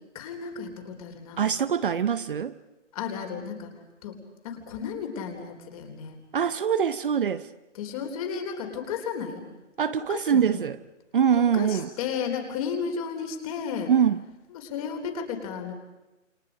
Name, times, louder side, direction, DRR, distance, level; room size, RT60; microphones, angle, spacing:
voice 1, 0.1-1.5 2.9-3.7 4.0-4.2 4.4-6.2 7.7-9.4 10.1-10.6 11.5-13.9 14.5-15.7, left 6 dB, 30° left, 3.9 m, -33 dB
voice 2, 1.4-2.5 6.3-7.5 9.8-10.8 11.1-11.9 13.9-14.2, right 8 dB, 45° right, 0.9 m, -23 dB
29.5 x 29.0 x 5.1 m
figure-of-eight pair, 150°, 38 cm